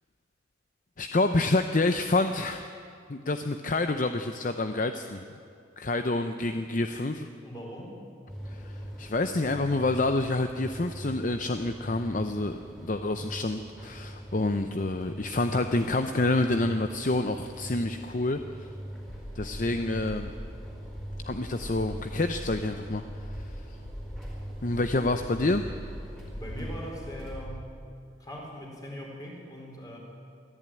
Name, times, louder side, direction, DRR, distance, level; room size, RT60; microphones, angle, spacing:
voice 1, 1.0-2.7 3.1-5.2 5.8-7.3 8.5-8.7 9.0-18.4 19.4-20.3 21.2-23.0 24.6-25.6, left 2 dB, 40° left, 8 dB, 0.7 m, -28 dB
voice 2, 7.4-8.0 26.3-27.7 28.2-30.0, equal, 20° left, -2 dB, 4.7 m, -41 dB
sound 1, 8.3-27.4, equal, 5° left, 4.3 m, -42 dB
sound 2, 19.0-27.5, equal, 85° left, 7.4 m, -42 dB
23.0 x 14.0 x 9.1 m, 2.4 s
head